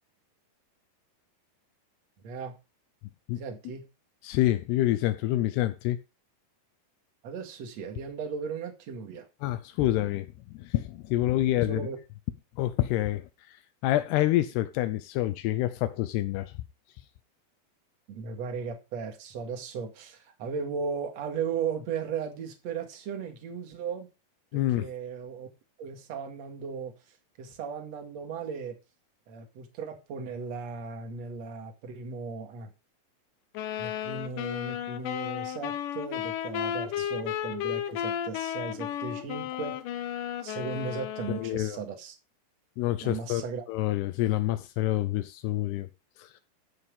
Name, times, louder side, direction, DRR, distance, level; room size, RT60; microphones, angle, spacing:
voice 1, 2.2-2.6 3.3-3.9 7.2-9.3 11.7-12.0 18.1-24.1 24.5-25.5 25.8-26.9 27.4-28.8 29.3-32.7 33.8-40.2 40.4-42.1 43.0-43.7, right 5 dB, 50° right, 2.9 m, -36 dB
voice 2, 4.2-6.0 9.4-11.9 12.6-13.2 13.8-16.5 24.5-24.9 41.3-41.8 42.8-45.9 46.2-46.4, left 15 dB, 85° left, 2.8 m, -27 dB
sound 1, 33.5-41.5, left 10 dB, 70° left, 2.2 m, -33 dB
14.0 x 6.4 x 5.5 m
omnidirectional pair, 4.6 m